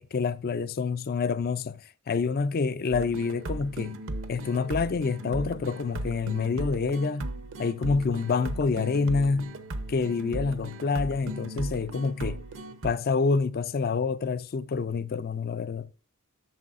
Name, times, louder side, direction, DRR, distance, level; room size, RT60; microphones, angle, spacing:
voice 1, 0.0-1.8 2.1-4.0 4.3-7.3 7.6-9.5 9.9-12.4 12.8-15.9, left 4 dB, 45° left, 0.4 m, -27 dB
sound 1, 2.9-12.9, right 1 dB, 65° right, 0.8 m, -37 dB
12.0 x 6.7 x 2.5 m
head